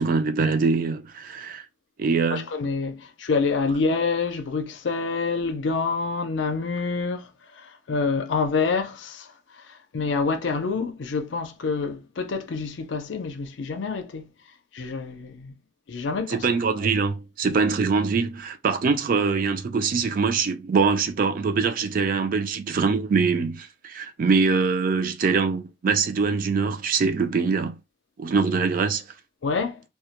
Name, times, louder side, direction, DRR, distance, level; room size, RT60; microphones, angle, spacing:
voice 1, 0.0-1.7 2.0-2.4 16.3-27.8 28.2-29.0, right 4 dB, 50° right, 0.4 m, -23 dB
voice 2, 2.3-14.3 14.7-15.5 15.9-16.5 29.4-29.8, left 4 dB, 90° left, 0.5 m, -27 dB
2.2 x 2.1 x 2.8 m
head